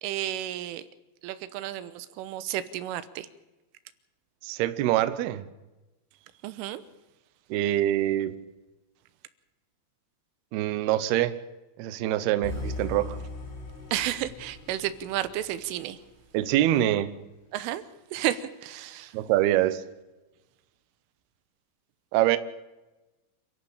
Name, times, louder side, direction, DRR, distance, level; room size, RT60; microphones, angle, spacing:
voice 1, 0.0-0.9 1.2-3.3 6.4-6.8 13.9-16.0 17.5-17.8 18.1-19.2, right 13 dB, 90° right, 14 dB, 3.5 m, -32 dB
voice 2, 4.4-5.5 7.5-8.3 10.5-11.4 11.8-13.2 16.3-17.1 19.1-19.8 22.1-22.4, right 13 dB, 75° right, 13 dB, 2.5 m, -24 dB
sound 1, 12.4-16.5, left 2 dB, 85° left, 8.6 m, -39 dB
28.0 x 11.5 x 8.6 m, 1.1 s
omnidirectional pair, 5.6 m